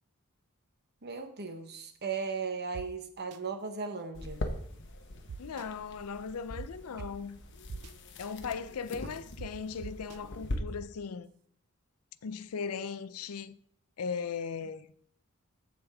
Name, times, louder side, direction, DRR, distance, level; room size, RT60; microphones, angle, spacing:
voice 1, 1.0-4.4 9.0-9.1, right 5 dB, 50° right, 1.0 m, -37 dB
sound 1, 2.7-2.8 3.3-3.4 5.3-5.7 6.6-6.7 7.0-7.1 7.7-7.9 9.4-9.5 9.8-10.2, right 6 dB, 85° right, 0.4 m, -42 dB
sound 2, 4.1-10.6, left 1 dB, 55° left, 1.0 m, -42 dB
voice 2, 5.4-7.4 8.2-11.3 12.2-13.5 14.0-14.9, left 6 dB, 70° left, 0.5 m, -38 dB
14.0 x 5.1 x 3.5 m
head